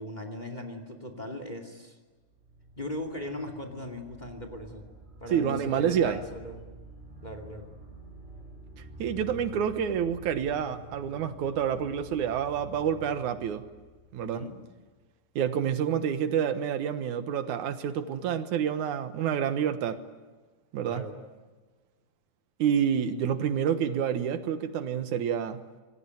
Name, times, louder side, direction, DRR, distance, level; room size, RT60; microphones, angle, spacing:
voice 1, 0.0-2.0 2.8-4.8 5.2-6.6 7.2-7.7 14.2-14.5 20.9-21.2, left 1 dB, 15° left, 6 dB, 2.4 m, -38 dB
sound 1, 2.1-14.9, equal, 20° right, 5.5 m, -48 dB
voice 2, 5.3-6.2 9.0-13.6 14.1-14.5 15.4-20.0 20.7-21.1 22.6-25.6, right 8 dB, 80° right, 10 dB, 2.7 m, -28 dB
27.0 x 20.5 x 9.3 m, 1.3 s
omnidirectional pair, 3.4 m